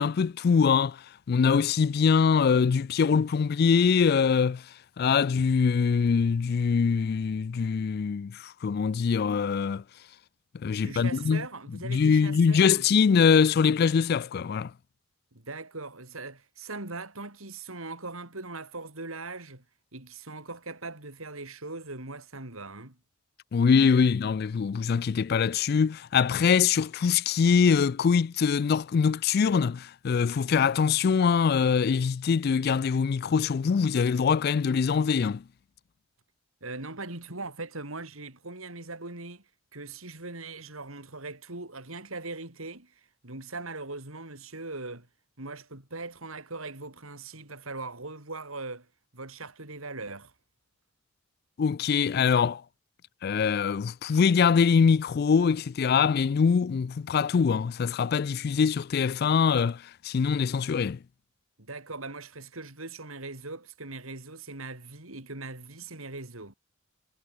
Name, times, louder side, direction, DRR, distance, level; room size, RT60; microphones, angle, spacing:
voice 1, 0.0-4.6 5.0-9.8 10.6-11.4 11.8-14.7 23.5-35.4 51.6-52.6 53.2-61.0, left 6 dB, 50° left, 0.3 m, -23 dB
voice 2, 10.8-12.9 15.3-19.6 19.9-23.0 36.6-39.4 39.7-42.9 43.2-45.1 45.4-48.9 49.1-50.3 61.6-66.5, right 3 dB, 80° right, 4.6 m, -40 dB
head